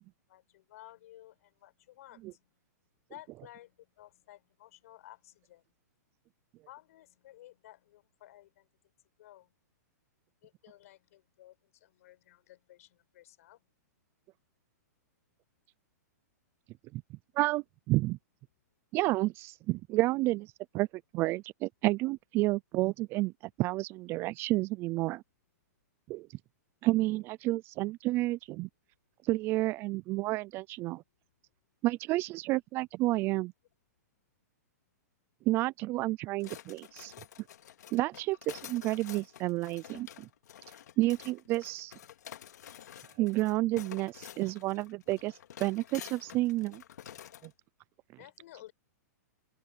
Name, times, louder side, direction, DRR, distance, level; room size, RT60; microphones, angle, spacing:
voice 1, 0.3-2.5 3.1-5.6 6.7-8.7 9.2-9.5 10.4-13.6 37.6-37.8 48.2-48.7, left 14 dB, 55° left, 5.0 m, -55 dB
voice 2, 16.9-18.2 18.9-20.9 21.1-23.3 23.6-25.2 26.1-26.3 26.8-28.7 29.2-31.0 31.8-33.5 35.5-37.1 37.9-40.3 41.0-41.9 43.2-46.8 47.4-47.5, right 19 dB, 25° right, 0.4 m, -30 dB
sound 1, 36.4-47.5, left 10 dB, 75° left, 2.4 m, -49 dB
open air
hypercardioid pair, 150°, 9 cm